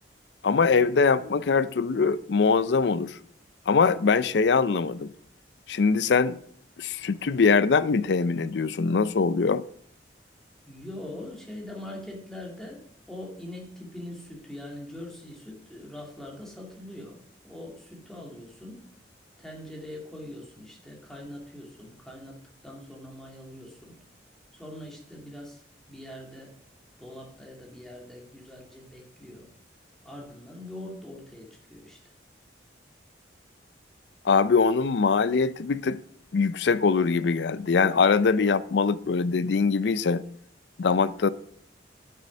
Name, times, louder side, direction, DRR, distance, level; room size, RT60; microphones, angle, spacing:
voice 1, 0.4-3.2 3.7-5.1 5.7-6.4 6.8-9.6 34.2-36.0 36.3-40.2 40.8-41.3, left 5 dB, 65° left, 0.5 m, -22 dB
voice 2, 10.7-17.2 17.4-18.8 19.4-24.0 24.6-25.6 25.9-26.6 27.0-29.5 30.0-32.0, left 1 dB, 5° left, 2.5 m, -42 dB
9.9 x 6.8 x 6.2 m
head